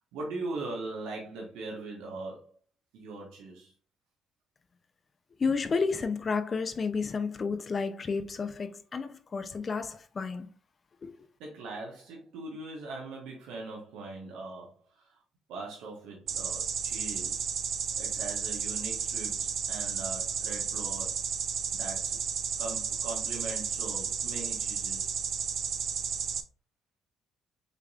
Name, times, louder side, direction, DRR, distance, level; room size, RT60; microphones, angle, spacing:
voice 1, 0.0-2.5 2.9-3.7 11.4-15.2 15.5-17.5 18.0-21.2 21.7-22.2 22.6-25.1, right 3 dB, 80° right, 1.2 m, -41 dB
voice 2, 5.4-10.5 11.0-11.1, left 4 dB, 45° left, 0.5 m, -31 dB
sound 1, 16.3-26.4, right 7 dB, 55° right, 0.5 m, -33 dB
6.5 x 3.4 x 2.4 m
supercardioid pair, 55°, 0 cm